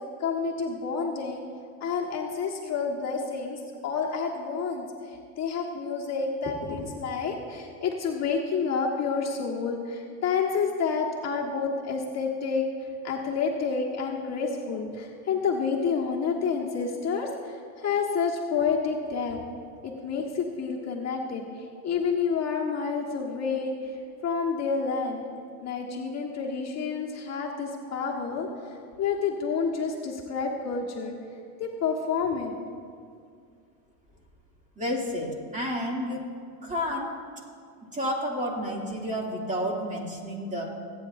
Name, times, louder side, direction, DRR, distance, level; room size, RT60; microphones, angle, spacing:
voice 1, 0.2-1.4 1.8-12.6 13.0-19.4 19.8-24.0 24.2-25.2 25.6-31.1 31.6-32.5, left 5 dB, 40° left, -2 dB, 1.5 m, -29 dB
voice 2, 34.8-36.2 36.6-37.1 37.9-40.6, equal, 15° right, -2 dB, 2.7 m, -30 dB
23.0 x 9.2 x 2.6 m, 2.2 s
supercardioid pair, 95°, 42 cm